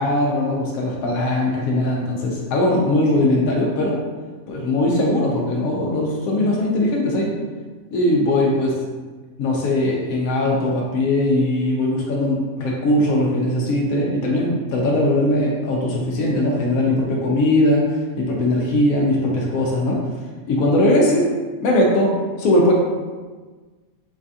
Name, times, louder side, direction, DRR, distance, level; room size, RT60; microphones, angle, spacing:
voice 1, 0.0-4.0 4.5-7.3 7.9-8.7 9.4-20.0 20.5-21.3 21.6-22.7, left 1 dB, 80° left, -3 dB, 1.0 m, -20 dB
4.1 x 2.3 x 2.6 m, 1.4 s
omnidirectional pair, 1.5 m